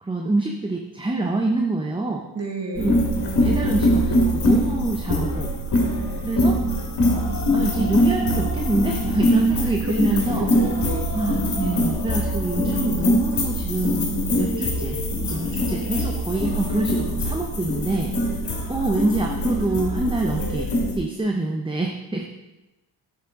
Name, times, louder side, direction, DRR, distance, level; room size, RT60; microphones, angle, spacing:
voice 1, 0.0-2.2 2.8-2.9 3.4-5.5 6.2-6.6 7.1-7.2 7.5-10.5 11.1-14.1 14.4-15.0 15.2-18.1 18.7-20.7 21.0-22.2, right 2 dB, 10° right, 1 dB, 0.8 m, -26 dB
voice 2, 2.3-2.9 9.8-11.1, right 2 dB, 35° right, 0 dB, 2.1 m, -29 dB
sound 1, 2.7-21.0, equal, 60° left, 2.5 m, -23 dB
9.6 x 6.2 x 3.8 m, 0.99 s
cardioid pair, 70°, 43 cm